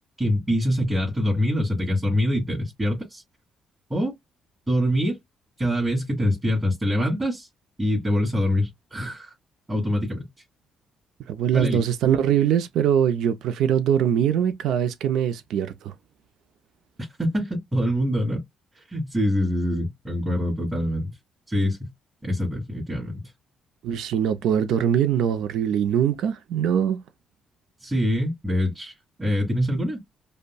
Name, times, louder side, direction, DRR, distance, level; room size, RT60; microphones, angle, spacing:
voice 1, 0.2-3.2 3.9-4.1 4.7-5.2 5.6-7.5 7.8-9.3 9.7-10.2 11.5-11.8 17.0-18.4 18.7-21.1 21.5-21.9 22.2-23.2 27.8-28.9 29.2-30.0, equal, 20° right, 2.2 m, -24 dB
voice 2, 11.3-15.9 23.8-27.0, right 9 dB, 80° right, 0.5 m, -22 dB
5.1 x 2.1 x 2.2 m
cardioid pair, 90°, 0 cm